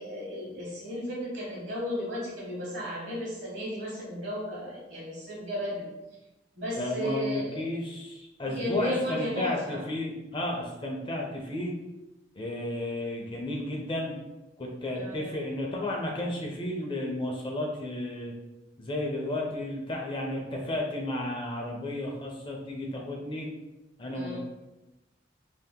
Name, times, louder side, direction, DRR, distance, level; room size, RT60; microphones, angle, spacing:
voice 1, 0.0-5.9 6.6-7.7 8.5-9.8 14.9-15.4 24.1-24.4, equal, 70° right, -4 dB, 1.1 m, -34 dB
voice 2, 6.8-11.7 12.4-14.1 14.6-18.3 18.8-23.5 24.0-24.4, left 1 dB, 25° left, -1 dB, 0.5 m, -33 dB
2.7 x 2.1 x 3.5 m, 1.0 s
head